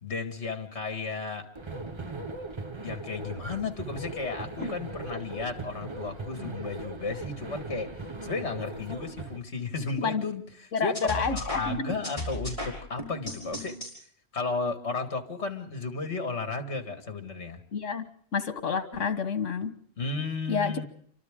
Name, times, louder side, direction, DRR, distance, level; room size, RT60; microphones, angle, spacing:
voice 1, 0.0-1.5 2.8-8.0 8.2-13.8 14.3-17.6 20.0-20.9, left 4 dB, 65° left, 7 dB, 2.2 m, -34 dB
sound 1, 1.5-9.4, right 2 dB, 25° right, 1.0 m, -39 dB
voice 2, 10.7-11.9 17.7-18.1 18.3-19.7 20.5-20.8, left 5 dB, 80° left, 10 dB, 1.7 m, -29 dB
sound 2, 10.9-13.9, left 1 dB, 25° left, 6.0 m, -35 dB
29.0 x 25.0 x 3.7 m, 0.62 s
omnidirectional pair, 1.2 m